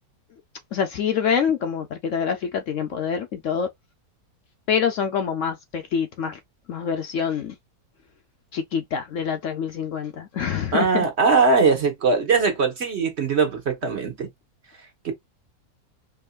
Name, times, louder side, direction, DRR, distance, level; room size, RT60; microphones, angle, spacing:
voice 1, 0.7-3.7 4.7-6.4 6.7-7.5 8.5-11.1, left 7 dB, 65° left, 0.8 m, -26 dB
voice 2, 10.7-14.3 15.0-15.1, right 4 dB, 45° right, 1.3 m, -20 dB
4.7 x 2.8 x 2.2 m
omnidirectional pair, 1.7 m